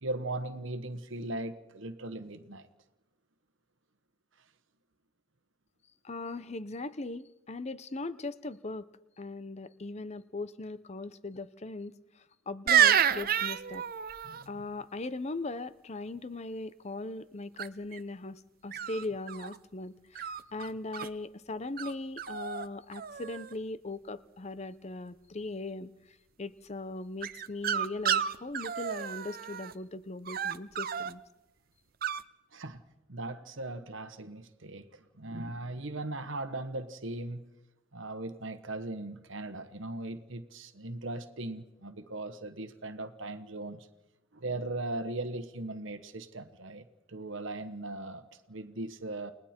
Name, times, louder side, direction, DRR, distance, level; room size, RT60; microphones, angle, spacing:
voice 1, 0.0-2.7 14.2-14.5 32.5-32.8 33.1-37.4 37.9-43.9 44.3-49.3, right 2 dB, 65° right, 9 dB, 1.3 m, -39 dB
voice 2, 6.0-8.9 9.2-11.9 12.5-13.8 14.5-25.9 26.4-31.2, left 2 dB, 30° left, 15 dB, 0.6 m, -39 dB
sound 1, 12.7-14.4 17.6-18.0 18.7-19.6 20.2-21.1 21.8-21.9 22.2-22.7 22.9-23.5 27.2-29.7 30.3-31.1 32.0-32.2, right 9 dB, 45° right, 0.6 m, -29 dB
29.5 x 20.0 x 4.4 m, 0.98 s
head